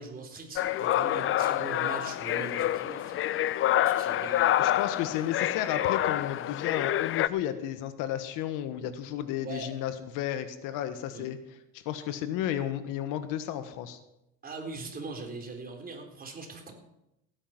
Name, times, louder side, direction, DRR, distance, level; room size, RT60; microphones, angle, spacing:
voice 1, 0.0-3.2 3.8-4.5 9.4-9.7 11.1-11.3 14.4-16.7, right 3 dB, 30° right, 2 dB, 4.0 m, -41 dB
sound 1, 0.6-7.3, left 13 dB, 40° left, 0.5 m, -27 dB
voice 2, 4.6-11.4 11.7-14.0, left 11 dB, 75° left, 10 dB, 1.5 m, -33 dB
15.5 x 9.8 x 6.0 m, 0.86 s
supercardioid pair, 105°, 32 cm